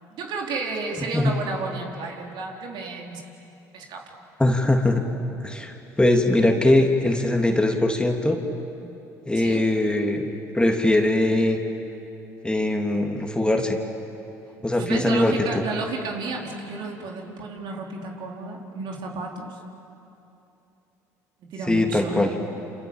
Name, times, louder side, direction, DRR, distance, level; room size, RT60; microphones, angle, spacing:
voice 1, 0.1-3.3 3.7-4.0 9.3-9.7 14.7-19.6 21.5-22.3, right 3 dB, 60° right, 0 dB, 4.3 m, -32 dB
voice 2, 4.4-5.0 5.4-8.4 9.3-10.3 10.5-11.6 12.4-13.8 14.6-15.3 21.7-22.3, left 1 dB, 10° left, 2 dB, 3.1 m, -21 dB
28.5 x 28.0 x 7.5 m, 2.9 s
hypercardioid pair, 70°, 9 cm